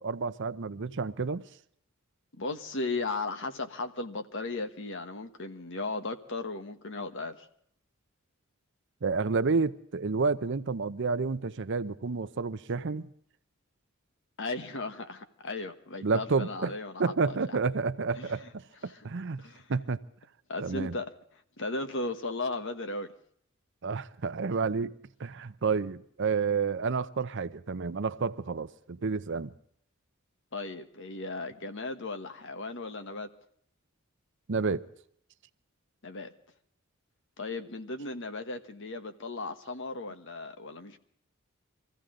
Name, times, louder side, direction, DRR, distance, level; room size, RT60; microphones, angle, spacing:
voice 1, 0.0-1.4 9.0-13.1 16.0-19.4 19.7-20.0 20.6-21.0 23.8-24.9 25.2-29.5 34.5-34.9, right 4 dB, 55° right, 0.6 m, -30 dB
voice 2, 2.3-7.5 14.4-17.6 18.2-18.4 19.4-19.7 20.5-21.1 21.6-23.1 30.5-33.3 36.0-36.3 37.4-41.0, left 3 dB, 60° left, 1.3 m, -36 dB
24.0 x 15.5 x 3.8 m
head